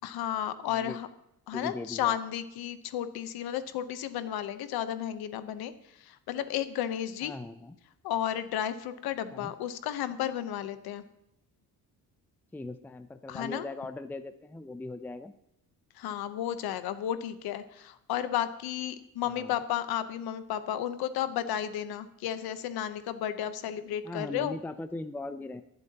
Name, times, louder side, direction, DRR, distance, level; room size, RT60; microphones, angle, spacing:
voice 1, 0.0-1.1 1.5-7.3 8.0-11.0 13.3-13.7 15.9-24.5, left 10 dB, 90° left, 11 dB, 0.9 m, -33 dB
voice 2, 0.7-1.0 1.5-2.2 7.2-7.8 9.3-9.5 12.5-15.3 19.3-19.6 24.0-25.6, left 2 dB, 5° left, 10 dB, 0.5 m, -39 dB
23.0 x 7.9 x 2.9 m, 0.80 s
cardioid pair, 125°, 36 cm